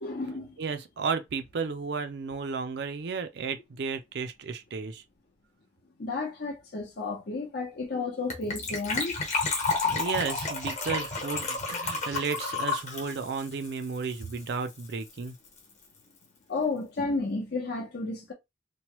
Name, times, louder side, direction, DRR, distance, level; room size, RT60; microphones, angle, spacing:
voice 1, 0.0-0.6 6.0-9.2 16.5-18.3, left 3 dB, 55° left, 0.8 m, -32 dB
voice 2, 0.6-5.0 9.8-15.3, right 5 dB, 60° right, 0.4 m, -33 dB
Gurgling / Trickle dribble / Fill (with liquid), 8.3-14.5 14.8-14.9 15.1-15.3 15.6-15.7, left 3 dB, 40° left, 1.1 m, -31 dB
3.0 x 2.2 x 3.0 m
head